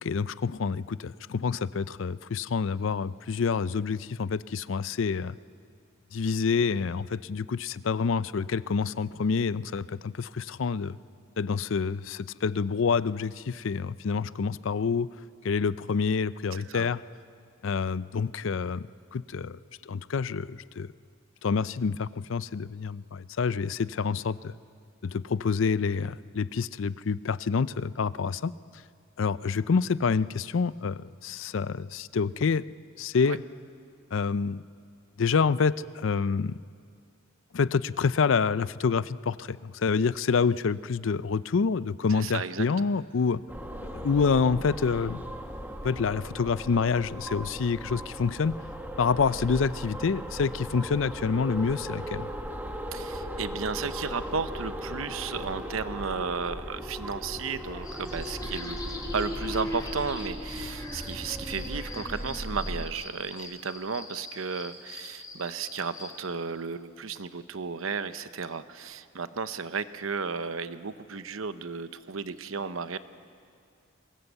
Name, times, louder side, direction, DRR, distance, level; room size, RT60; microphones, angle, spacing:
voice 1, 0.0-5.4 6.1-11.0 11.4-15.1 15.4-17.0 17.6-19.6 19.9-20.9 21.4-24.5 25.0-28.5 29.2-32.6 33.0-33.4 34.1-34.6 35.2-36.5 37.5-43.4 43.9-45.2 45.8-48.5 49.0-52.3, left 5 dB, 65° left, 17 dB, 0.5 m, -27 dB
voice 2, 16.5-16.9 33.2-33.4 42.1-42.7 52.9-58.8 59.1-73.0, right 5 dB, 75° right, 12 dB, 0.8 m, -34 dB
sound 1, 43.5-62.9, equal, 10° right, 1.5 m, -37 dB
sound 2, 57.8-66.1, left 3 dB, 20° left, 3.0 m, -44 dB
23.0 x 19.5 x 8.1 m, 2.3 s
head